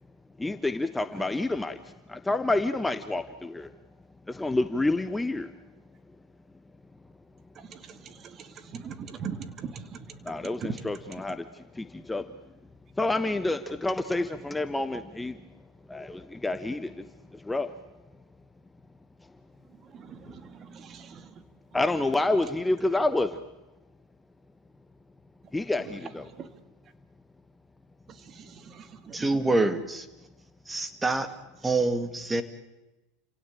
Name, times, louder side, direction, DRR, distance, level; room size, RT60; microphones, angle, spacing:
voice 1, 0.4-1.8 2.1-3.7 4.3-5.5 10.3-11.4 11.8-12.2 13.0-15.4 15.9-17.1 17.5-17.7 21.7-23.4 25.5-26.3, left 2 dB, 10° left, 1.1 m, -28 dB
voice 2, 7.7-10.2 19.9-21.2 26.4-26.5 28.3-29.2, right 6 dB, 35° right, 2.4 m, -41 dB
voice 3, 29.1-30.1 30.7-31.3 31.6-32.4, right 2 dB, 10° right, 2.3 m, -26 dB
29.5 x 17.0 x 9.1 m
supercardioid pair, 115°, 0 cm